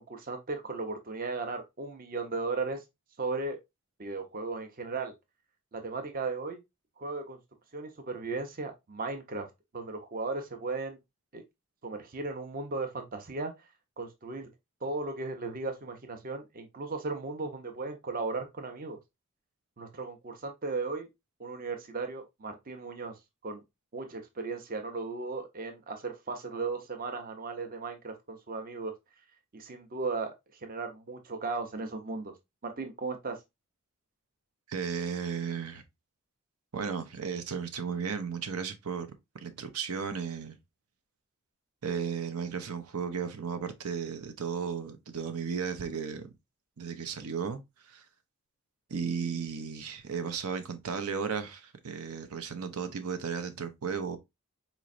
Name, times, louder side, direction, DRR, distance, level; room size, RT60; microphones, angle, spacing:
voice 1, 0.0-2.8 3.2-3.6 4.0-5.1 5.7-6.6 7.0-7.4 7.7-9.5 9.7-11.0 11.3-11.4 11.8-13.5 14.0-14.5 14.8-19.0 19.8-21.1 21.4-23.1 23.4-23.6 23.9-28.9 29.5-30.3 30.6-32.3 32.6-33.4, right 3 dB, 40° right, 0.6 m, -36 dB
voice 2, 34.7-35.8 36.7-39.1 39.3-40.6 41.8-46.3 46.8-47.6 47.9-48.0 48.9-54.2, right 6 dB, 90° right, 0.7 m, -34 dB
4.2 x 3.0 x 2.5 m
head